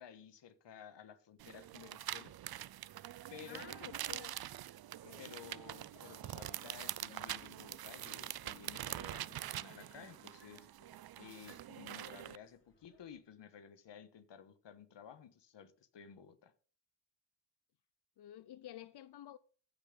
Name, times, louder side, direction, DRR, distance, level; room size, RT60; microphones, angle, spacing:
voice 1, 0.0-2.3 3.3-3.6 5.2-10.7 11.2-16.5, left 8 dB, 90° left, 1.4 m, -54 dB
sound 1, 1.4-12.4, right 12 dB, 60° right, 0.5 m, -45 dB
voice 2, 3.5-4.6 5.0-5.3 18.2-19.4, left 12 dB, 70° left, 0.5 m, -52 dB
sound 2, 5.2-13.2, left 1 dB, 30° left, 3.2 m, -68 dB
15.0 x 5.4 x 5.3 m
wide cardioid pair, 95°, 42 cm